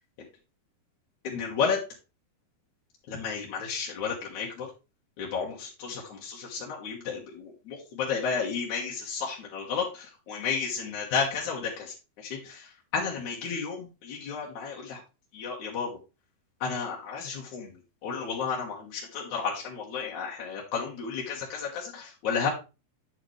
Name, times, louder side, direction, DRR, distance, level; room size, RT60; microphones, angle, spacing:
voice 1, 1.2-1.8 3.1-4.7 5.2-12.7 12.9-15.0 15.3-15.9 16.6-17.7 18.0-22.5, left 6 dB, 60° left, -3 dB, 2.5 m, -32 dB
8.9 x 6.6 x 3.2 m, 0.30 s
omnidirectional pair, 4.4 m